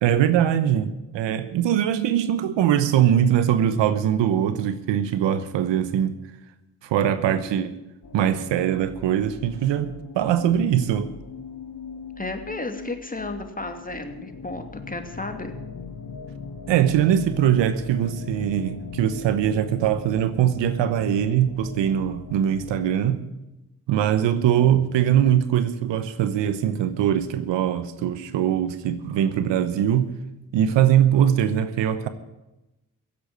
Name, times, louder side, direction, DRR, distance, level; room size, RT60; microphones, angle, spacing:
voice 1, 0.0-6.2 6.8-7.7 8.1-11.1 16.7-23.2 23.9-30.1 30.5-32.1, right 10 dB, 75° right, 1.1 m, -22 dB
sound 1, 8.0-23.1, left 5 dB, 50° left, 1.7 m, -39 dB
voice 2, 12.2-15.6 24.5-24.6, left 2 dB, 20° left, 2.6 m, -33 dB
16.0 x 8.7 x 8.9 m
hypercardioid pair, 40°, 44 cm